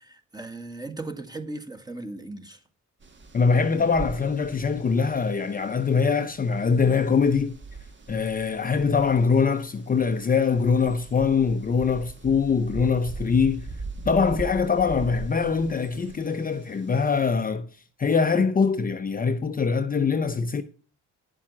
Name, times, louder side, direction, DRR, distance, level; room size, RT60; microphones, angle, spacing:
voice 1, 0.0-2.6, right 2 dB, 15° right, 1.7 m, -37 dB
sound 1, 3.0-17.2, right 3 dB, 40° right, 1.6 m, -41 dB
voice 2, 3.3-7.6 8.1-13.7 14.1-17.7 18.0-20.6, left 5 dB, 30° left, 0.7 m, -23 dB
9.8 x 7.3 x 6.0 m
cardioid pair, 90°, 30 cm